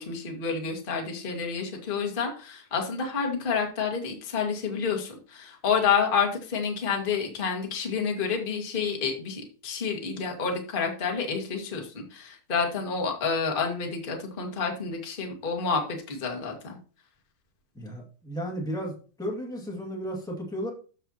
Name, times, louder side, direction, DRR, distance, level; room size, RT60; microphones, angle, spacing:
voice 1, 0.0-16.8, left 5 dB, 35° left, 1 dB, 0.8 m, -29 dB
voice 2, 17.7-20.7, equal, 5° left, -2 dB, 0.4 m, -34 dB
14.0 x 5.7 x 2.9 m, 0.37 s
omnidirectional pair, 4.4 m